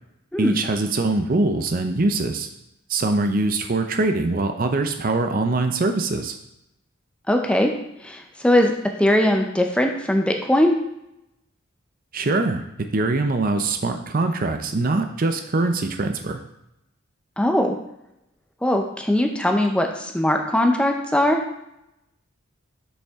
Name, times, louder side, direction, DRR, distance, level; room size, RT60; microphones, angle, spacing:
voice 1, 0.4-2.5 2.9-6.4 12.1-12.6 12.9-16.4, right 2 dB, 45° right, 6 dB, 0.5 m, -23 dB
voice 2, 7.3-7.7 8.0-8.7 9.0-10.8 17.4-17.8 18.6-21.4, left 1 dB, 5° left, 3 dB, 0.5 m, -20 dB
6.5 x 5.3 x 3.5 m, 0.84 s
head